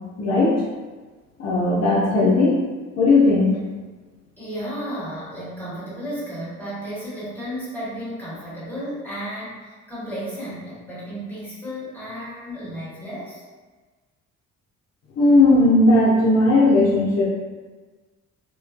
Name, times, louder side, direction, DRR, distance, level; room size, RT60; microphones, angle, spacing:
voice 1, 0.2-0.6 1.4-2.6 3.0-3.5 15.2-17.2, left 2 dB, 55° left, -6 dB, 0.7 m, -16 dB
voice 2, 4.4-13.4, equal, 5° left, -10 dB, 1.5 m, -33 dB
3.0 x 2.2 x 2.4 m, 1.3 s
cardioid pair, 90°, 30 cm